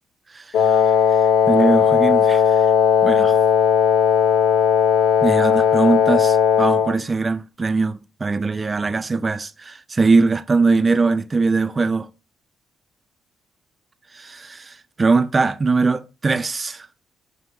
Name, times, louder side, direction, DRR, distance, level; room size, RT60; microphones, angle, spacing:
voice 1, 0.3-0.7 1.5-2.7 3.0-3.4 5.2-12.1 14.1-16.9, right 4 dB, 30° right, 0.3 m, -21 dB
Wind instrument woodwind instrument, 0.5-7.0, left 8 dB, 90° left, 0.4 m, -16 dB
4.9 x 2.6 x 3.0 m
cardioid pair, 90°, 0 cm